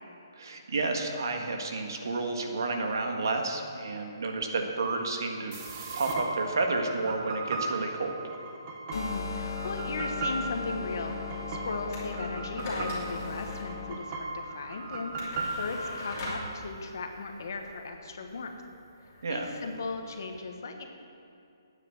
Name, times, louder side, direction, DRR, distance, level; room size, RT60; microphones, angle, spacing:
voice 1, 0.3-8.2 19.2-19.5, right 3 dB, 60° right, 3 dB, 1.6 m, -31 dB
sound 1, 5.5-16.3, right 3 dB, 20° right, 1.0 m, -37 dB
sound 2, 8.9-13.9, left 5 dB, 85° left, 1.5 m, -38 dB
voice 2, 8.9-11.2 11.5-18.6 19.3-20.9, left 3 dB, 55° left, 4 dB, 1.3 m, -37 dB
sound 3, 11.9-20.3, left 1 dB, 25° left, 2.9 m, -42 dB
9.0 x 8.4 x 9.1 m, 2.6 s
hypercardioid pair, 175°, 2 cm